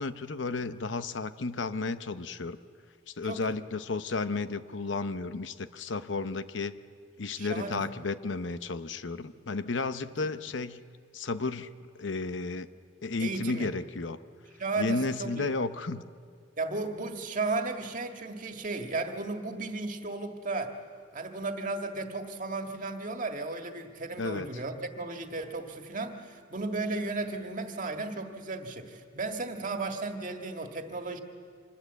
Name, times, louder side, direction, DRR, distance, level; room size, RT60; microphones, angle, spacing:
voice 1, 0.0-2.6 3.1-6.7 7.2-10.8 11.1-11.7 12.0-12.7 13.0-14.2 14.8-16.1 24.2-24.5, left 3 dB, 85° left, 12 dB, 0.8 m, -33 dB
voice 2, 3.2-3.6 7.4-7.8 13.2-13.7 14.6-15.5 16.6-20.8 21.1-31.2, right 3 dB, 45° right, 4 dB, 1.8 m, -34 dB
25.5 x 20.5 x 8.1 m, 2.1 s
head